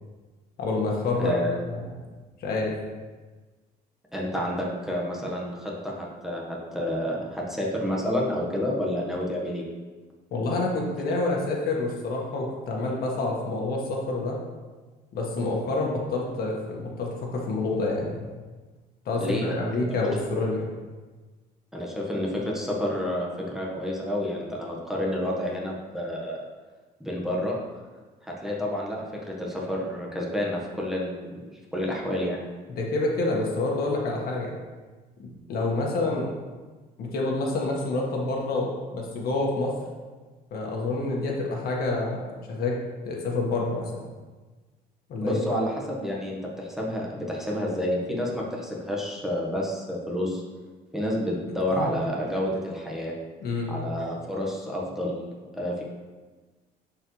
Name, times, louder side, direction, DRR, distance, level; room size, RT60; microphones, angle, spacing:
voice 1, 0.6-1.3 1.7-1.8 2.4-2.7 10.3-14.4 15.1-18.2 19.0-20.7 32.8-34.5 35.2-36.3 37.0-39.7 40.5-42.8 43.0-43.9 45.1-45.4 51.7-51.9 53.4-53.7, left 2 dB, 65° left, -2 dB, 1.7 m, -28 dB
voice 2, 1.2-1.5 4.1-9.6 19.2-19.8 21.7-26.4 27.0-27.6 28.2-31.4 31.7-32.4 45.2-50.4 50.9-53.1 53.7-55.1 55.5-55.8, left 1 dB, ahead, -3 dB, 1.4 m, -29 dB
11.0 x 4.7 x 3.2 m, 1.3 s
cardioid pair, 110°, 17 cm